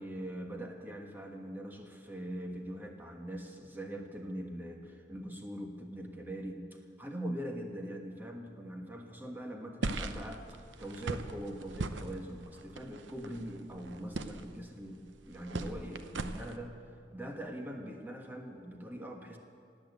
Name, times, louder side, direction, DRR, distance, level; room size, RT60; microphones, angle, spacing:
voice 1, 0.0-16.8 17.1-19.4, right 1 dB, 10° right, 2 dB, 1.4 m, -42 dB
sound 1, 9.8-16.6, right 2 dB, 85° right, 0.8 m, -40 dB
18.0 x 8.8 x 8.1 m, 2.4 s
head